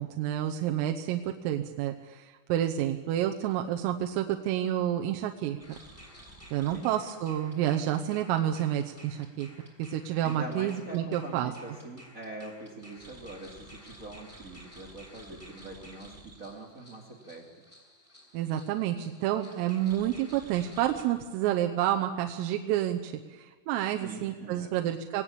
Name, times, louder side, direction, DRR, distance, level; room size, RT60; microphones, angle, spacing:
voice 1, 0.0-5.6 6.5-9.5 9.8-11.5 18.3-25.2, right 11 dB, 85° right, 4 dB, 3.6 m, -29 dB
sound 1, 5.6-21.0, equal, 5° left, 5.5 m, -52 dB
voice 2, 10.2-17.4 24.0-24.9, right 2 dB, 30° right, 1 dB, 1.6 m, -43 dB
20.0 x 18.5 x 8.5 m, 1.4 s
omnidirectional pair, 5.8 m